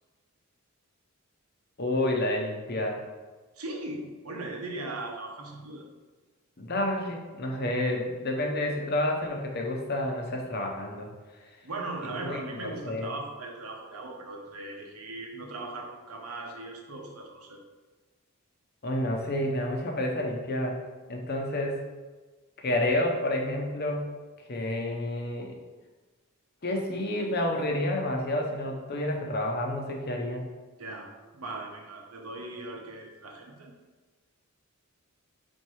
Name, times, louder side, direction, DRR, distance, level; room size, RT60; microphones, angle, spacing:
voice 1, 1.8-3.0 6.6-11.1 12.2-13.1 18.8-20.8 21.1-21.8 22.6-24.1 24.5-25.6 26.6-30.4, left 1 dB, 45° left, 1 dB, 0.9 m, -29 dB
voice 2, 3.5-5.9 11.6-17.6 30.8-33.7, right 2 dB, 90° right, 1 dB, 1.1 m, -39 dB
4.5 x 4.3 x 4.8 m, 1.3 s
head